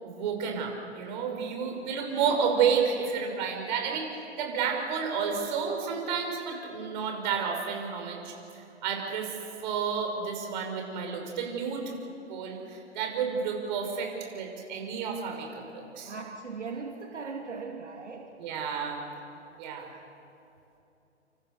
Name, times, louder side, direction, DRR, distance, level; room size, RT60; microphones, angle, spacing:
voice 1, 0.0-4.1 4.4-9.3 9.6-11.9 12.3-16.1 18.4-19.0 19.6-19.9, right 6 dB, 40° right, 2 dB, 6.2 m, -31 dB
voice 2, 1.6-2.0 16.0-18.4, right 4 dB, 80° right, 2 dB, 2.5 m, -39 dB
28.5 x 27.5 x 6.9 m, 2.8 s
figure-of-eight pair, 130°, 35 cm